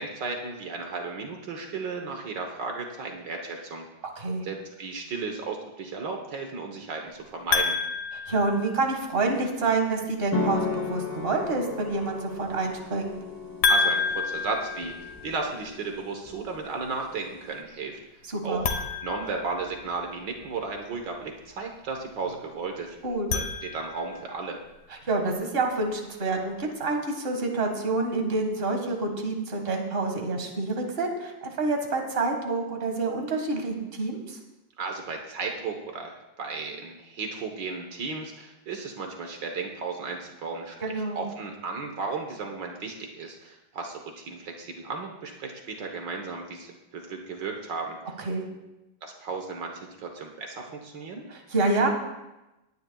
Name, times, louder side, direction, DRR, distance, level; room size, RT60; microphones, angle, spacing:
voice 1, 0.0-3.9 4.4-7.8 13.7-17.9 18.4-18.6 19.0-23.0 23.3-24.6 34.8-48.1 49.0-51.2, right 4 dB, 70° right, 3 dB, 1.8 m, -34 dB
sound 1, 7.5-9.2 13.6-15.7 18.5-20.2 23.1-24.3, left 4 dB, 65° left, 1.6 m, -29 dB
voice 2, 8.3-13.1 18.3-18.7 23.0-23.3 25.1-34.4 40.8-41.2 48.2-48.5 51.3-51.9, right 3 dB, 30° right, 3 dB, 1.8 m, -27 dB
sound 2, 10.3-17.6, left 3 dB, 20° left, 0.5 m, -35 dB
19.0 x 10.5 x 2.3 m, 0.97 s
omnidirectional pair, 2.0 m